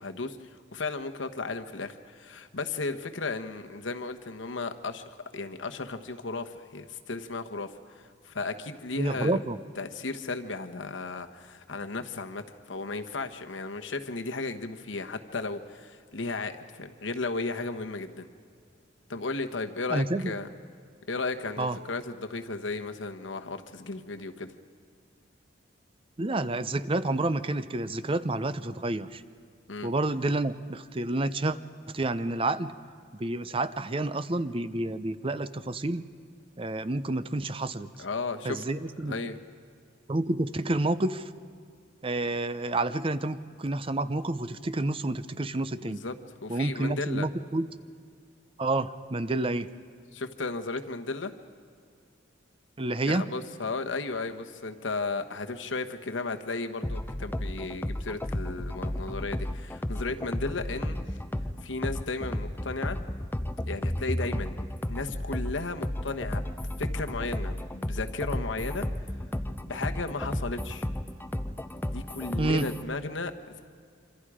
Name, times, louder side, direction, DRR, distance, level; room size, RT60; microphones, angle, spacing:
voice 1, 0.0-9.4 9.8-18.3 19.1-20.5 21.1-24.5 29.7-29.9 38.0-38.6 39.0-39.4 45.8-46.1 46.4-47.3 50.1-51.3 53.0-61.0 61.6-63.0 63.7-68.8 69.7-70.9 71.8-73.6, left 3 dB, 85° left, 6 dB, 1.2 m, -35 dB
voice 2, 9.0-9.6 19.9-20.3 21.6-21.8 26.2-29.2 29.8-31.6 31.9-32.7 33.2-36.0 36.6-37.9 38.4-39.3 40.1-41.2 42.0-46.0 46.5-47.7 48.6-49.7 52.8-53.2 72.4-72.7, right 2 dB, 30° right, 13 dB, 0.6 m, -29 dB
sound 1, 56.8-72.8, left 1 dB, 10° left, 0.6 m, -33 dB
26.5 x 26.0 x 5.0 m, 2.3 s
head